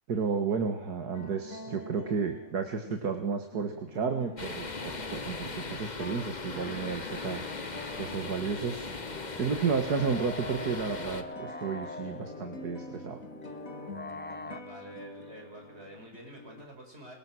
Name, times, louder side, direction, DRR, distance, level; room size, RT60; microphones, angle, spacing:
voice 1, 0.1-7.4 8.0-8.9 9.4-13.2, right 5 dB, 80° right, 5 dB, 2.3 m, -32 dB
sound 1, 1.1-16.6, left 2 dB, 55° left, 3.1 m, -47 dB
sound 2, 4.4-11.2, left 3 dB, 30° left, 1.4 m, -39 dB
sound 3, 6.3-14.6, left 1 dB, 10° left, 0.6 m, -44 dB
voice 2, 14.5-17.2, right 1 dB, 40° right, 2 dB, 6.2 m, -48 dB
23.5 x 20.5 x 6.2 m, 0.81 s
omnidirectional pair, 1.7 m